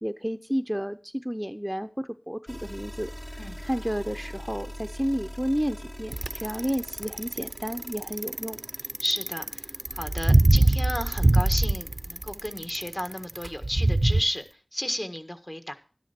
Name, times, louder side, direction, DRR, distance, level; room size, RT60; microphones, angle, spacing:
voice 1, 0.0-3.1 3.6-8.6, equal, 10° right, 10 dB, 0.6 m, -31 dB
sound 1, 2.5-14.5, equal, 15° left, 1.1 m, -44 dB
Bicycle, 6.1-14.2, right 2 dB, 60° right, 0.5 m, -23 dB
voice 2, 9.0-14.4 14.7-15.7, equal, 35° left, 7 dB, 1.5 m, -33 dB
13.0 x 10.5 x 4.3 m, 0.38 s
wide cardioid pair, 40°, 0 cm